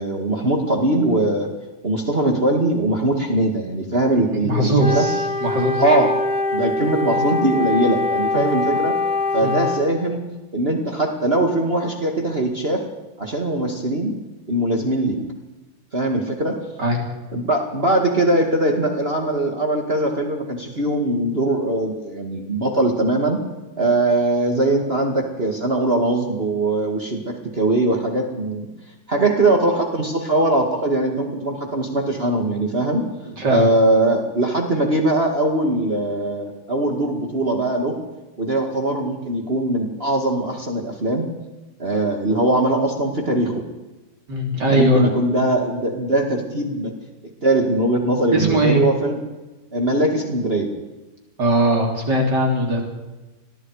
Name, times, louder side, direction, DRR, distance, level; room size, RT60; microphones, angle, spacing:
voice 1, 0.0-1.5 1.8-5.0 5.8-6.1 6.5-9.0 9.3-10.2 10.5-12.8 13.2-14.1 14.5-15.2 15.9-16.6 17.3-23.4 23.8-28.7 29.1-33.0 33.5-38.0 38.4-41.3 41.8-43.6 44.7-46.9 47.4-49.2 49.7-50.7, right 1 dB, 30° right, 2 dB, 2.3 m, -21 dB
voice 2, 4.4-5.2 5.4-5.8 8.3-8.5 9.4-9.6 16.8-17.0 33.4-33.7 44.3-45.1 48.3-48.8 51.4-52.8, right 1 dB, 65° right, 1 dB, 4.2 m, -19 dB
Wind instrument woodwind instrument, 4.8-10.0, left 2 dB, 5° right, 1.4 m, -23 dB
29.0 x 21.0 x 5.0 m, 1.1 s
omnidirectional pair, 2.0 m